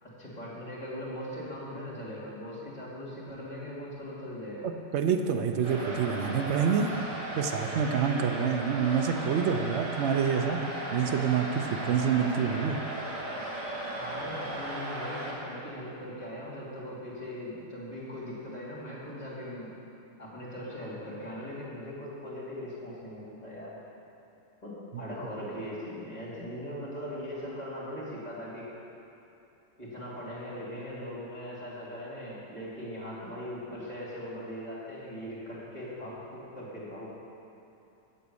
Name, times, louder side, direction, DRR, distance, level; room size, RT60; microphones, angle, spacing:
voice 1, 0.0-4.7 13.7-19.7 20.2-23.7 24.6-28.7 29.8-37.1, equal, 25° left, -8 dB, 2.7 m, -40 dB
voice 2, 4.6-6.9 7.4-12.8, right 7 dB, 65° right, 5 dB, 0.6 m, -27 dB
sound 1, 5.6-15.3, right 1 dB, 50° right, 1.8 m, -36 dB
7.7 x 6.9 x 8.3 m, 2.9 s
omnidirectional pair, 1.9 m